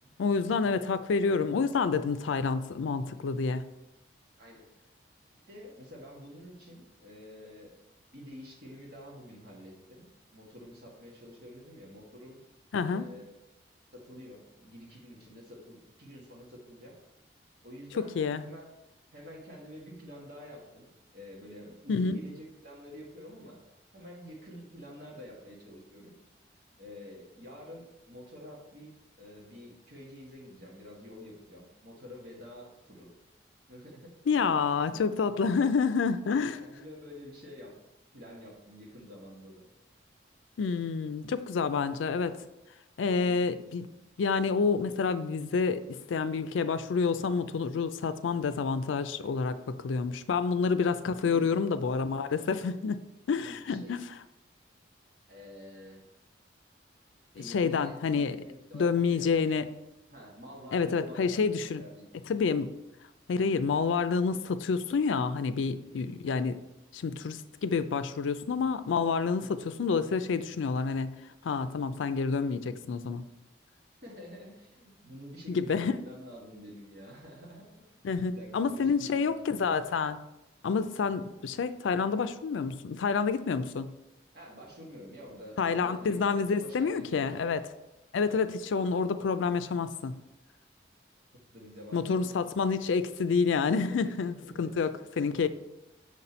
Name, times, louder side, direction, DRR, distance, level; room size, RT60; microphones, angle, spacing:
voice 1, 0.2-3.7 12.7-13.1 18.2-18.4 21.9-22.2 34.3-36.6 40.6-42.3 43.0-43.9 44.2-53.0 53.3-54.0 57.4-58.4 58.7-59.7 60.7-61.8 62.3-62.7 63.3-66.6 66.9-71.1 71.4-73.2 75.5-75.9 78.0-80.2 80.6-83.9 85.6-87.6 88.1-90.2 91.9-95.5, left 5 dB, 90° left, 12 dB, 0.4 m, -28 dB
voice 2, 4.4-4.8 5.3-7.7 8.1-12.4 12.8-13.4 13.9-16.9 17.6-18.7 19.1-23.6 23.9-26.1 26.8-33.1 33.7-34.4 35.5-35.7 36.3-37.7 38.1-39.7 53.4-54.0 55.3-56.0 57.3-59.3 60.1-62.2 65.9-66.1 69.4-69.6 74.0-79.6 84.3-86.2 86.6-87.4 88.2-88.5 91.3-92.2 93.9-94.9, equal, 55° right, -2 dB, 1.6 m, -48 dB
6.2 x 4.1 x 4.3 m, 0.92 s
head